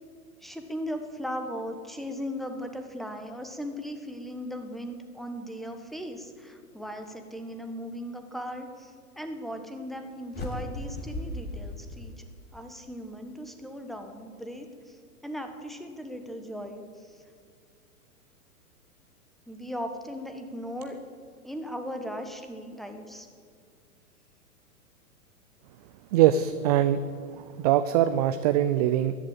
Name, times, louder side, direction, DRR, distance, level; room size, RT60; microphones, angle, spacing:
voice 1, 0.4-12.2 12.5-15.0 15.2-17.2 19.5-21.0 21.4-23.3, equal, ahead, 5 dB, 1.3 m, -38 dB
sound 1, 10.3-12.7, left 1 dB, 20° left, 2.7 m, -37 dB
voice 2, 26.1-27.0 27.4-29.1, right 11 dB, 30° right, 12 dB, 0.4 m, -22 dB
14.0 x 11.0 x 8.7 m, 2.1 s
hypercardioid pair, 120°, 45 cm